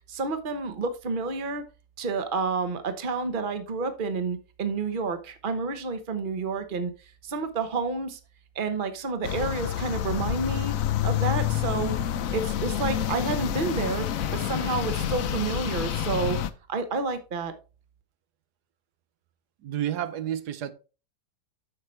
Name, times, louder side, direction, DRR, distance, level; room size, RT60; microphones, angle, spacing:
voice 1, 0.1-1.6 2.0-6.9 7.2-8.2 8.5-10.7 11.0-11.9 12.3-14.1 14.3-16.4 16.7-17.5, right 4 dB, 35° right, 1.1 m, -29 dB
sound 1, 9.2-16.5, left 10 dB, 65° left, 1.0 m, -28 dB
voice 2, 19.6-20.7, right 11 dB, 85° right, 1.4 m, -30 dB
9.6 x 6.4 x 3.2 m
omnidirectional pair, 1.7 m